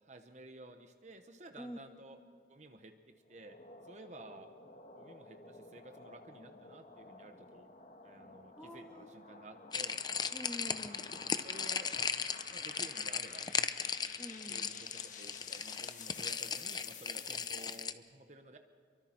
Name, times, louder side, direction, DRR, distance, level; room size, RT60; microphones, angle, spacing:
voice 1, 0.0-2.2 2.5-2.9 3.3-3.6 3.8-4.5 5.0-7.7 8.0-10.0 11.3-11.9 12.5-13.5 14.5-18.6, right 2 dB, 40° right, 6 dB, 1.0 m, -53 dB
sound 1, 3.3-17.9, left 5 dB, 45° left, 1.4 m, -53 dB
voice 2, 8.6-9.1 10.3-11.1 14.2-14.7, equal, 5° left, 2 dB, 1.8 m, -47 dB
sound 2, 9.7-17.9, left 6 dB, 25° left, 0.6 m, -37 dB
28.5 x 23.5 x 4.4 m, 2.2 s
head